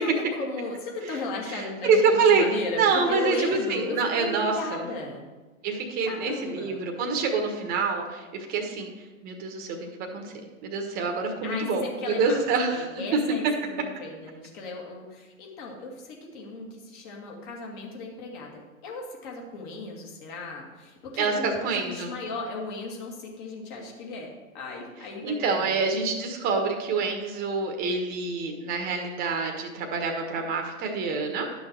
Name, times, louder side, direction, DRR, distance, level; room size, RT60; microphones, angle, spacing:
voice 1, 0.0-5.2 6.0-6.9 11.4-25.7, left 2 dB, 35° left, -1 dB, 2.3 m, -36 dB
voice 2, 1.5-2.4 2.7-4.9 5.6-8.9 9.2-9.9 10.1-10.3 10.6-12.9 13.1-13.2 21.2-22.1 25.2-31.5, right 4 dB, 20° right, 3 dB, 1.3 m, -26 dB
11.5 x 6.3 x 4.6 m, 1.2 s
hypercardioid pair, 130°, 41 cm